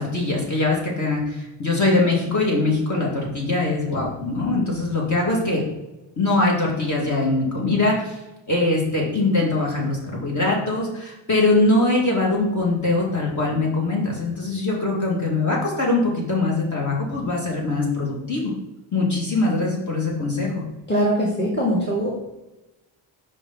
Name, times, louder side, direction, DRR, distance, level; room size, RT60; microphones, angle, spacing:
voice 1, 0.0-5.6 6.2-8.2 8.5-18.5 18.9-20.6, left 2 dB, 40° left, -3 dB, 2.0 m, -22 dB
voice 2, 20.9-22.1, equal, 20° left, -4 dB, 1.6 m, -21 dB
5.6 x 4.9 x 3.9 m, 1.0 s
cardioid pair, 90°, 47 cm